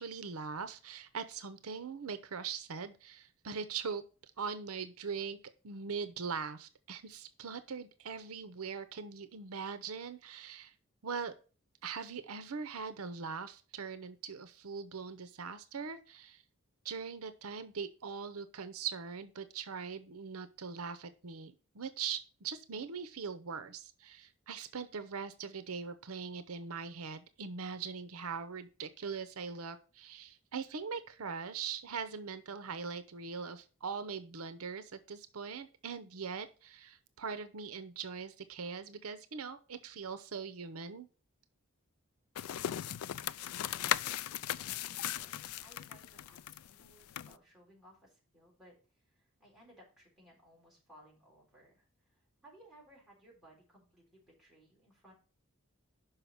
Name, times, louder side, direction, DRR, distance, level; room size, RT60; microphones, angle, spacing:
voice 1, 0.0-4.0 4.4-5.4 5.6-10.7 11.0-11.3 11.8-16.4 16.8-41.1, right 5 dB, 80° right, 12 dB, 0.7 m, -41 dB
sound 1, 42.3-47.3, left 11 dB, 85° left, 0.3 m, -37 dB
voice 2, 44.7-55.1, right 1 dB, ahead, -5 dB, 3.7 m, -61 dB
5.7 x 5.5 x 6.9 m, 0.37 s
head